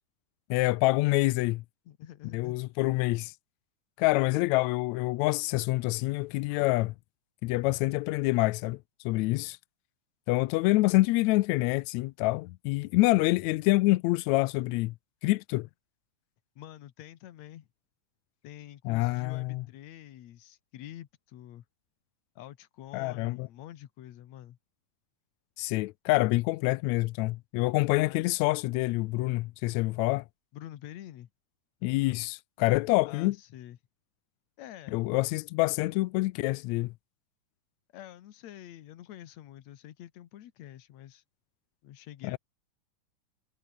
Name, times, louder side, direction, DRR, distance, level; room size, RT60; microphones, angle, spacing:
voice 1, 0.5-1.6 2.3-3.3 4.0-6.9 7.4-8.8 9.1-9.6 10.3-14.9 15.2-15.7 18.9-19.6 22.9-23.5 25.6-30.3 31.8-33.4 34.9-36.9 42.2-42.4, left 20 dB, 85° left, 1.6 m, -26 dB
voice 2, 1.9-2.6 16.6-17.7 18.4-21.6 22.4-24.6 28.0-28.4 30.5-31.3 33.1-33.8 34.6-35.0 37.9-41.2 41.8-42.4, left 12 dB, 65° left, 2.3 m, -47 dB
omnidirectional pair, 3.7 m